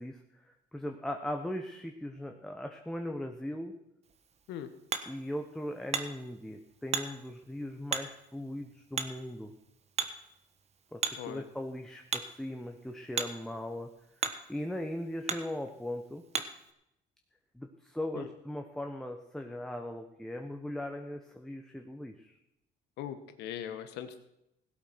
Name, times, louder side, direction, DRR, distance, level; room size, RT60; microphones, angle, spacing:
voice 1, 0.0-3.7 5.1-9.5 10.9-13.9 14.2-16.2 17.5-22.4, left 1 dB, 5° left, 4 dB, 1.2 m, -39 dB
Hammer, 4.0-16.7, right 6 dB, 40° right, 1.3 m, -40 dB
voice 2, 23.0-24.2, left 10 dB, 85° left, 9 dB, 1.3 m, -40 dB
17.0 x 8.2 x 5.9 m, 0.81 s
cardioid pair, 110°, 17 cm